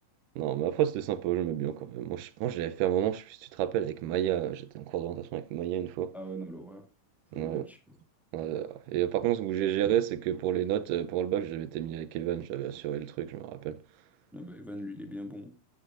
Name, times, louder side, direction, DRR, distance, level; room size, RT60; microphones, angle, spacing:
voice 1, 0.4-6.1 7.3-7.7 8.3-13.8, right 11 dB, 90° right, 2.3 m, -30 dB
voice 2, 6.1-6.9 7.3-8.0 14.3-15.5, equal, ahead, 1.5 m, -41 dB
13.5 x 9.8 x 2.5 m
omnidirectional pair, 3.7 m